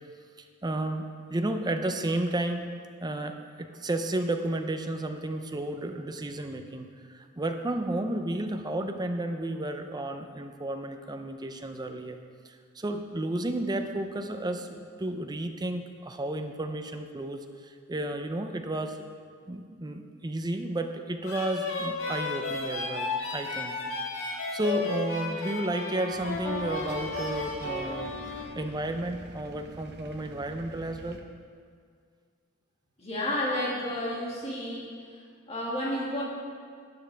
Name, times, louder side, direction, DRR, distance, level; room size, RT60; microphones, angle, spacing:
voice 1, 0.4-2.7 3.0-12.2 12.4-19.0 19.5-23.8 24.5-31.2, right 1 dB, 20° right, 6 dB, 0.6 m, -32 dB
sound 1, 21.2-28.4, left 3 dB, 65° left, 1.6 m, -33 dB
sound 2, 26.1-31.2, right 1 dB, 50° right, 0.8 m, -47 dB
voice 2, 33.0-34.9 35.5-36.2, left 1 dB, 30° left, -6 dB, 2.3 m, -31 dB
12.0 x 9.8 x 3.4 m, 2.1 s
head